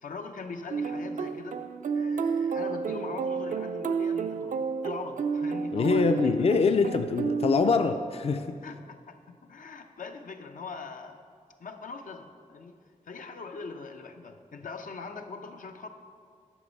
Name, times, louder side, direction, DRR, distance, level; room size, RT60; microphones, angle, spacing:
voice 1, 0.0-1.6 1.9-6.4 8.6-11.2 11.6-12.8 13.0-15.9, left 4 dB, 85° left, 6 dB, 0.7 m, -41 dB
sound 1, 0.7-8.2, right 5 dB, 75° right, 0.4 m, -31 dB
voice 2, 5.7-8.6, left 4 dB, 50° left, 8 dB, 0.4 m, -24 dB
9.9 x 6.3 x 5.3 m, 2.1 s
wide cardioid pair, 100°, 13 cm